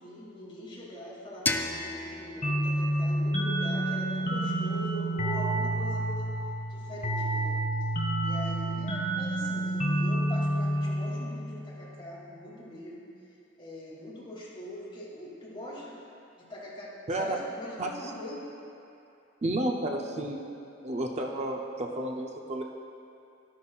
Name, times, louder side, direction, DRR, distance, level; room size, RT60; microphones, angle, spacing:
voice 1, 0.0-7.6 8.2-13.0 13.6-16.0 16.4-18.5 19.9-20.3 20.7-20.9, equal, 25° left, -7 dB, 2.3 m, -43 dB
sound 1, 1.5-4.3, left 3 dB, 10° left, 0.3 m, -35 dB
sound 2, 2.4-11.8, right 1 dB, 45° left, 1.2 m, -29 dB
voice 2, 17.1-17.4 17.8-17.9 19.4-20.4 20.8-22.6, right 1 dB, 35° right, 1 dB, 0.6 m, -31 dB
12.0 x 11.0 x 2.3 m, 2.7 s
head